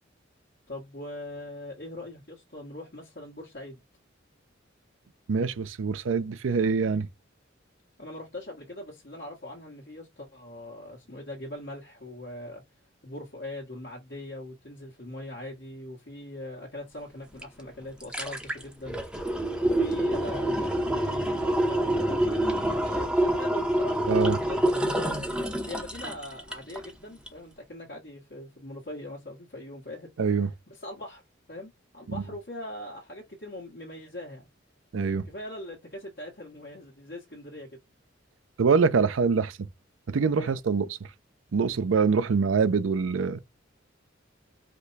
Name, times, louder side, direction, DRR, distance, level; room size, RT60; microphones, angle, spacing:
voice 1, 0.7-3.8 8.0-12.6 13.0-19.0 19.6-22.4 22.7-25.3 25.7-30.3 30.7-31.2 31.5-34.5 35.2-37.8 40.3-40.5, left 1 dB, 55° left, 1.4 m, -41 dB
voice 2, 5.3-7.1 24.1-24.4 30.2-30.5 32.1-32.2 34.9-35.3 38.6-39.7 40.1-40.9 41.5-43.4, right 5 dB, 75° right, 0.5 m, -24 dB
sound 1, 17.4-17.5 17.8-26.9 27.3-27.4, right 1 dB, 5° right, 0.8 m, -27 dB
5.1 x 2.2 x 4.0 m
head